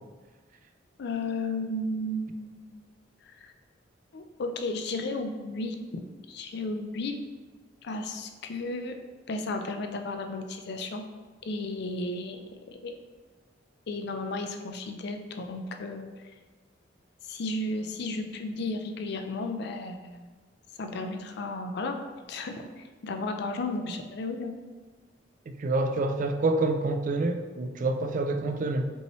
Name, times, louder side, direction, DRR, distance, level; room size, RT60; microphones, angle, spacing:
voice 1, 1.0-2.8 3.4-3.5 4.1-6.0 6.3-7.2 7.8-9.0 9.3-11.0 11.4-13.0 13.9-16.1 17.3-20.2 20.8-22.0 22.3-24.5, left 2 dB, 60° left, 6 dB, 0.4 m, -34 dB
voice 2, 25.5-28.9, right 2 dB, 45° right, 6 dB, 0.3 m, -27 dB
5.3 x 3.1 x 3.1 m, 1.4 s
head